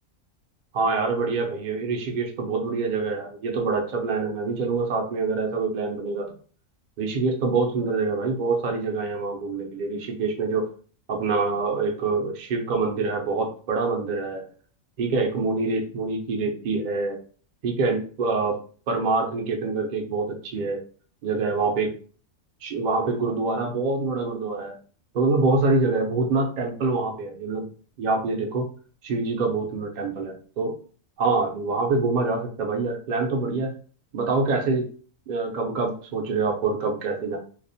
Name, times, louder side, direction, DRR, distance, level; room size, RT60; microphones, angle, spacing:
voice 1, 0.7-6.3 7.0-10.7 11.1-14.4 15.0-17.2 17.6-18.6 18.9-20.8 21.2-21.9 22.6-24.7 25.1-27.7 28.0-28.6 29.0-30.7 31.2-33.7 34.1-34.9 35.3-37.4, right 3 dB, 70° right, 2 dB, 0.4 m, -25 dB
2.4 x 2.0 x 2.6 m, 0.42 s
omnidirectional pair, 1.4 m